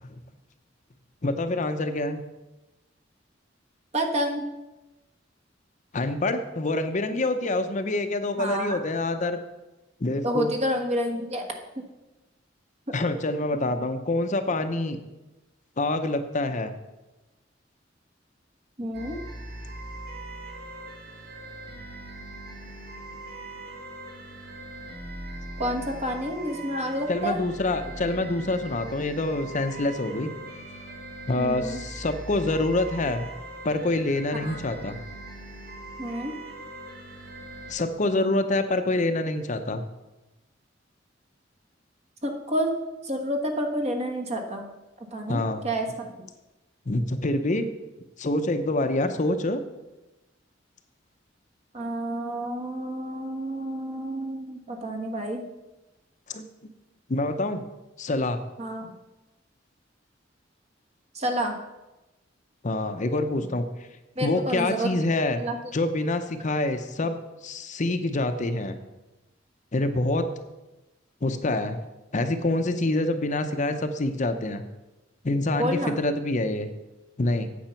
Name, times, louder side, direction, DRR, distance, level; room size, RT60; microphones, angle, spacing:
voice 1, 1.2-2.2 5.9-9.4 10.0-10.5 12.9-15.0 15.8-16.7 27.1-30.3 31.3-33.3 33.6-35.0 37.7-39.8 45.3-45.6 46.9-47.7 48.2-49.6 56.3-56.4 57.1-57.6 58.0-58.4 62.6-63.7 64.2-65.4 65.7-68.8 69.7-70.3 71.2-71.8 72.1-74.6 75.2-76.7 77.2-77.5, left 2 dB, 40° left, 8 dB, 0.7 m, -26 dB
voice 2, 3.9-4.4 8.4-8.8 10.2-11.4 11.8-11.9 18.8-19.2 25.6-27.4 31.3-31.8 34.4-34.6 36.0-36.3 42.2-42.7 43.0-44.7 45.0-46.1 51.7-55.4 58.6-58.9 61.1-61.6 64.2-64.9 65.4-65.6 75.6-75.9, equal, 35° right, 4 dB, 1.3 m, -29 dB
sound 1, 18.9-37.7, right 2 dB, 50° right, 2.2 m, -41 dB
8.9 x 7.9 x 5.7 m, 1.0 s
head